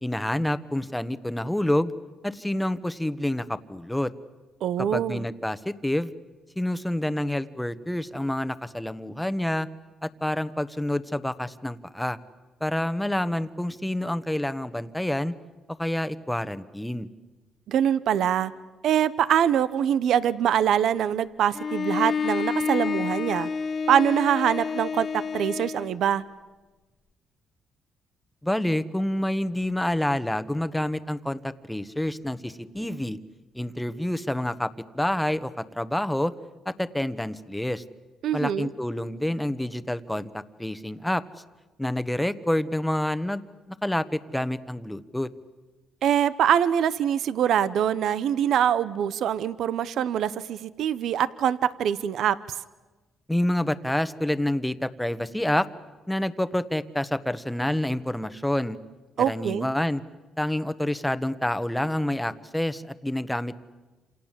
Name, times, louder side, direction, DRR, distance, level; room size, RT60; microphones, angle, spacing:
voice 1, 0.0-1.9 2.2-4.1 4.8-6.1 6.6-9.7 10.0-12.2 12.6-15.3 15.8-17.1 28.4-33.2 33.5-36.3 36.6-37.8 38.3-41.2 41.8-43.4 43.8-45.3 53.3-55.7 56.1-58.8 59.2-60.0 60.4-63.6, left 1 dB, 5° left, 13 dB, 1.3 m, -28 dB
voice 2, 4.6-5.3 17.7-18.5 18.8-23.5 23.9-26.2 38.2-38.7 46.0-52.4 59.2-59.7, right 9 dB, 75° right, 16 dB, 0.9 m, -24 dB
Bowed string instrument, 21.5-26.0, left 6 dB, 45° left, 1.4 m, -29 dB
28.0 x 27.5 x 7.6 m, 1.2 s
cardioid pair, 90°, 0 cm